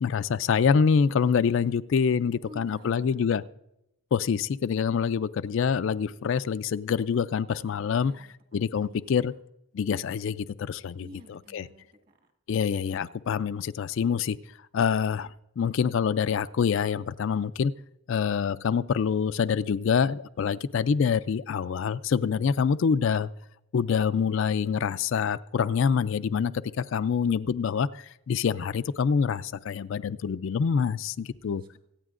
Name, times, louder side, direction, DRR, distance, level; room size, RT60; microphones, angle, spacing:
voice 1, 0.0-3.4 4.1-8.3 8.5-9.3 9.7-11.7 12.5-14.4 14.7-17.7 18.1-23.3 23.7-31.6, left 6 dB, 60° left, 13 dB, 0.3 m, -26 dB
voice 2, 2.5-3.2 7.9-8.3 8.7-9.2 11.0-12.2 31.4-31.8, equal, 40° right, 4 dB, 1.8 m, -50 dB
24.5 x 8.9 x 2.5 m, 0.81 s
head